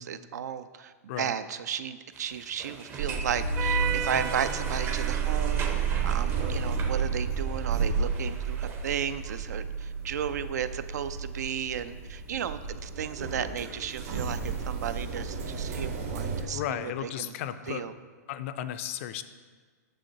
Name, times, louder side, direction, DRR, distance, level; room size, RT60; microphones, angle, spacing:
voice 1, 0.0-5.7 6.0-17.3 17.7-17.9, right 8 dB, 80° right, 13 dB, 0.4 m, -34 dB
sound 1, 2.1-9.4, right 6 dB, 25° right, 0.5 m, -37 dB
sound 2, 3.0-16.4, right 5 dB, 65° right, 1.1 m, -31 dB
voice 2, 16.5-17.8 18.3-19.2, left 11 dB, 50° left, 12 dB, 0.4 m, -34 dB
6.5 x 6.3 x 2.8 m, 1.5 s
hypercardioid pair, 130°, 9 cm